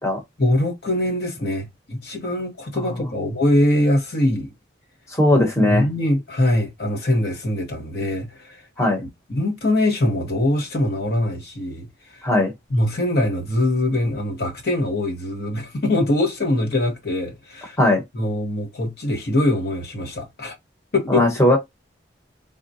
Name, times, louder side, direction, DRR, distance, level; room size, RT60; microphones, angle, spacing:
voice 1, 0.4-4.5 5.6-8.6 9.0-12.3 12.7-17.8 18.1-20.6 20.9-21.2, left 1 dB, 55° left, 1.0 m, -23 dB
voice 2, 5.1-5.8 8.8-9.0 12.2-12.5 17.8-18.0 21.1-21.6, left 1 dB, 15° left, 0.9 m, -18 dB
3.7 x 2.1 x 2.6 m
head